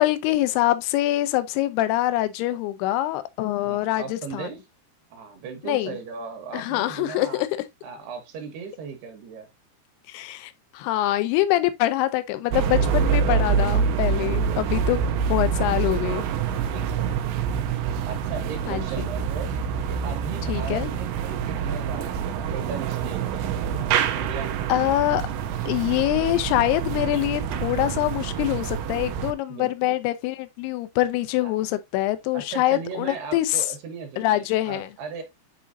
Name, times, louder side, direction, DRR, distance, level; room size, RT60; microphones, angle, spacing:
voice 1, 0.0-4.5 5.6-6.0 6.5-7.5 10.1-15.0 15.3-16.3 18.7-19.1 20.5-20.9 24.7-25.2 25.7-33.7 34.2-34.9, left 15 dB, 80° left, 2.5 m, -24 dB
voice 2, 3.6-4.6 5.1-7.4 7.8-9.5 14.1-14.7 16.6-17.6 18.0-19.5 19.9-23.4 24.1-25.1 29.5-30.0 31.4-31.6 32.3-35.2, right 6 dB, 70° right, 3.2 m, -37 dB
sound 1, 12.5-29.3, right 7 dB, 85° right, 3.1 m, -26 dB
8.6 x 4.3 x 2.6 m
omnidirectional pair, 5.1 m